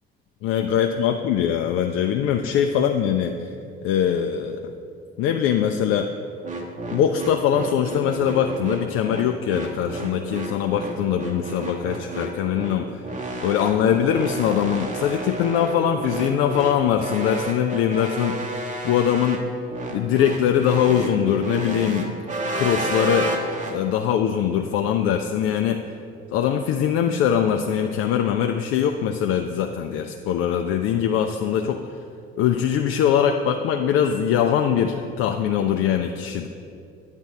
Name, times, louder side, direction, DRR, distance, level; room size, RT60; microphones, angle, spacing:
voice 1, 0.4-3.5 3.8-4.7 5.2-6.1 6.9-13.1 13.4-18.5 18.8-19.4 19.9-22.1 22.5-23.3 23.7-25.8 26.3-31.8 32.4-36.5, left 9 dB, 45° left, 5 dB, 0.4 m, -22 dB
sound 1, 6.4-23.8, right 2 dB, 25° right, 0.9 m, -31 dB
8.9 x 3.3 x 6.4 m, 2.4 s
figure-of-eight pair, 50°, 30 cm